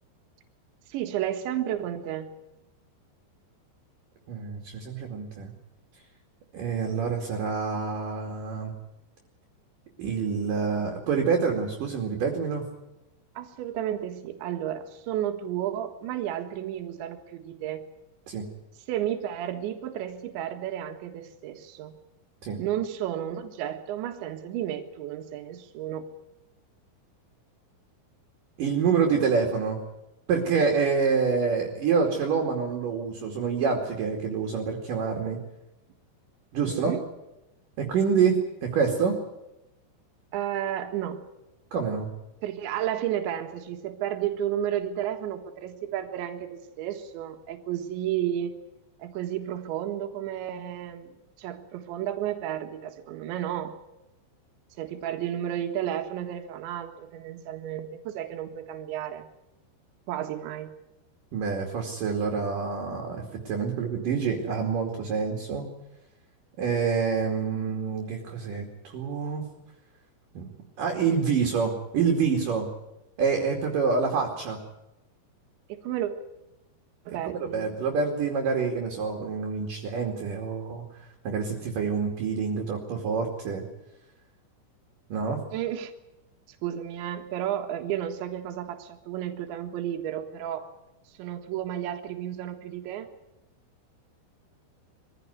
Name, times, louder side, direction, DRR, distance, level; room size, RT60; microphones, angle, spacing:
voice 1, 0.9-2.3 13.4-17.8 18.9-21.9 22.6-26.1 36.6-37.0 40.3-41.2 42.4-48.5 49.0-53.7 54.8-59.3 60.1-60.7 75.7-76.1 77.1-77.7 85.5-85.9 86.6-90.7 91.2-93.1, right 11 dB, 75° right, 5 dB, 3.9 m, -32 dB
voice 2, 4.3-5.5 6.5-8.7 10.0-12.6 18.3-18.5 22.4-22.6 28.6-29.8 30.3-35.4 36.5-36.9 37.8-39.2 41.7-42.1 61.3-65.7 66.6-69.4 70.4-70.5 70.8-72.7 73.2-74.6 77.2-80.8 81.2-83.6 85.1-85.4, right 5 dB, 50° right, 2 dB, 3.7 m, -27 dB
23.0 x 16.0 x 9.7 m, 0.93 s
omnidirectional pair, 5.3 m